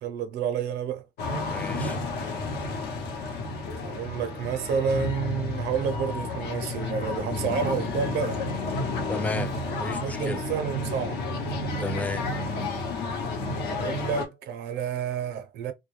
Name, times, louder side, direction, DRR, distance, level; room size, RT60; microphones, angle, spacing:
voice 1, 0.0-1.1 3.8-8.5 10.0-11.2 13.7-15.7, right 7 dB, 80° right, 0.6 m, -29 dB
sound 1, 1.2-14.2, left 3 dB, 80° left, 0.8 m, -31 dB
voice 2, 1.4-2.0 7.4-7.6 9.1-9.5 9.8-10.4 11.8-12.2, left 2 dB, 10° left, 0.4 m, -33 dB
2.2 x 2.2 x 3.1 m
cardioid pair, 110°, 17 cm